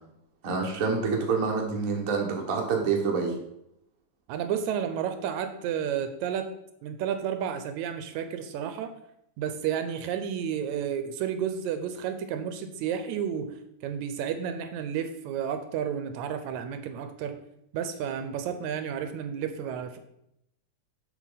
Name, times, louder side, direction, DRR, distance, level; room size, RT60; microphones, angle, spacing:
voice 1, 0.4-3.3, right 5 dB, 45° right, 0 dB, 1.1 m, -27 dB
voice 2, 4.3-6.5 6.8-8.9 9.4-13.5 13.8-17.3 17.7-20.0, right 8 dB, 80° right, 8 dB, 1.9 m, -31 dB
7.3 x 6.2 x 4.0 m, 0.79 s
omnidirectional pair, 3.4 m